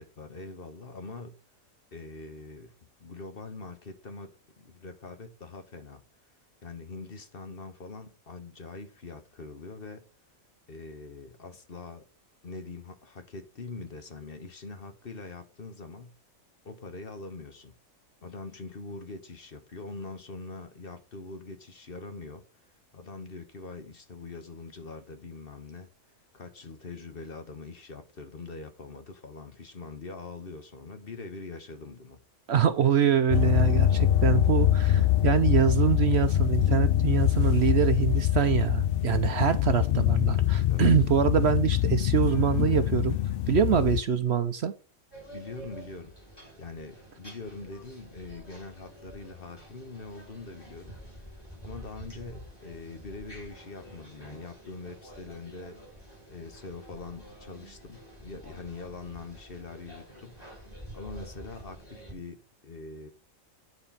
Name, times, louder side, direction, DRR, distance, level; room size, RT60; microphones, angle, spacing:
voice 1, 0.0-1.4 1.9-2.7 3.0-6.0 6.6-10.0 10.7-12.1 12.4-16.1 16.6-17.7 18.2-25.9 26.3-32.2 40.6-41.0 45.3-46.1 46.6-51.0 51.6-55.8 56.3-60.4 60.9-63.1, left 3 dB, 45° left, 1.2 m, -43 dB
voice 2, 32.5-43.2 43.5-44.7, right 8 dB, 60° right, 0.8 m, -25 dB
sound 1, 33.3-44.0, left 12 dB, 65° left, 0.5 m, -24 dB
sound 2, 45.1-62.1, equal, 15° left, 4.5 m, -48 dB
9.6 x 4.2 x 5.6 m
omnidirectional pair, 1.4 m